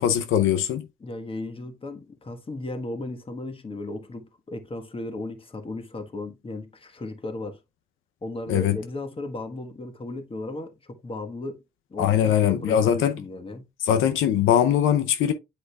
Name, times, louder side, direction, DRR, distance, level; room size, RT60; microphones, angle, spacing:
voice 1, 0.0-0.9 8.5-8.8 12.0-13.1 13.8-15.3, left 10 dB, 85° left, 0.7 m, -21 dB
voice 2, 1.0-7.6 8.2-11.6 11.9-13.7, left 2 dB, 25° left, 1.4 m, -35 dB
8.2 x 4.9 x 2.3 m
cardioid pair, 90°, 20 cm